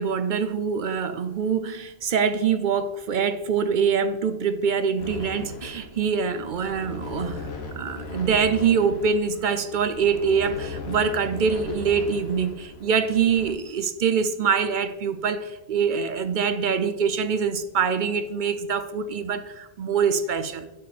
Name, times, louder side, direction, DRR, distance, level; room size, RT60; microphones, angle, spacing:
voice 1, 0.0-7.5 7.7-20.7, right 6 dB, 60° right, 11 dB, 0.6 m, -24 dB
sound 1, 5.0-13.5, left 2 dB, 70° left, 1.3 m, -38 dB
8.4 x 5.1 x 4.1 m, 1.0 s
omnidirectional pair, 1.1 m